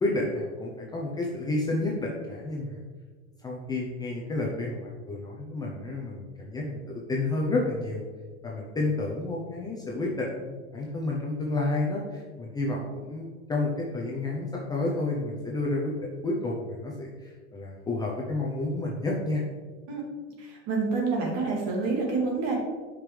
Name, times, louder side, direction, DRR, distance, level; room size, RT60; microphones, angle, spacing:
voice 1, 0.0-2.8 3.4-8.0 8.4-15.9 16.2-19.4, left 2 dB, 10° left, -3 dB, 0.7 m, -30 dB
voice 2, 20.4-22.5, right 4 dB, 45° right, -1 dB, 2.3 m, -28 dB
9.1 x 5.3 x 3.3 m, 1.4 s
supercardioid pair, 145°, 35 cm